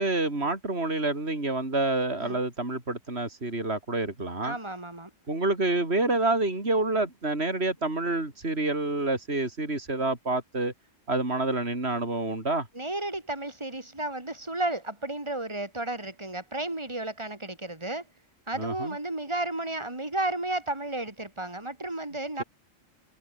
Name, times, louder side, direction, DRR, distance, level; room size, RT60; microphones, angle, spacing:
voice 1, 0.0-4.6 5.3-10.7 11.1-12.7 18.6-18.9, right 2 dB, 55° right, 4.9 m, -28 dB
voice 2, 4.4-5.1 12.7-18.0 18.5-22.4, right 2 dB, 20° right, 3.7 m, -33 dB
omnidirectional pair, 1.3 m